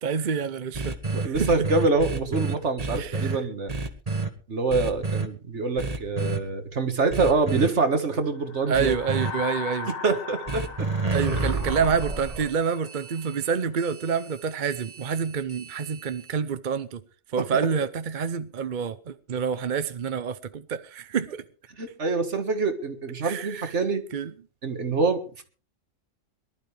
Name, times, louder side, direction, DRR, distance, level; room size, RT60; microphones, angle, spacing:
voice 1, 0.0-1.7 3.0-3.4 8.7-9.9 11.1-17.0 17.3-21.4 23.2-23.7 24.1-24.3, right 6 dB, 45° right, 0.8 m, -28 dB
sound 1, 0.7-3.3 3.7-4.3 4.7-5.2 5.8-6.4 7.1-7.7 8.7-9.3 10.5-16.3, right 3 dB, 30° right, 1.7 m, -30 dB
voice 2, 1.1-3.7 4.5-9.0 10.0-10.9 21.8-24.0 24.6-25.4, right 3 dB, 65° right, 2.0 m, -25 dB
sound 2, 8.3-12.9, left 5 dB, 70° left, 1.9 m, -38 dB
23.0 x 12.0 x 3.4 m
omnidirectional pair, 1.3 m